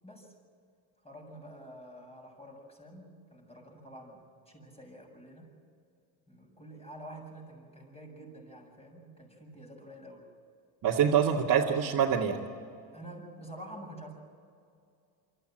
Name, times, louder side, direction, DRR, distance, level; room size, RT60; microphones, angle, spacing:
voice 1, 0.0-0.3 1.0-5.5 6.3-10.3 12.9-14.1, right 1 dB, 15° left, 0 dB, 7.8 m, -48 dB
voice 2, 10.8-12.4, right 8 dB, 50° right, -4 dB, 2.2 m, -25 dB
24.5 x 15.0 x 9.1 m, 2.4 s
supercardioid pair, 80°, 44 cm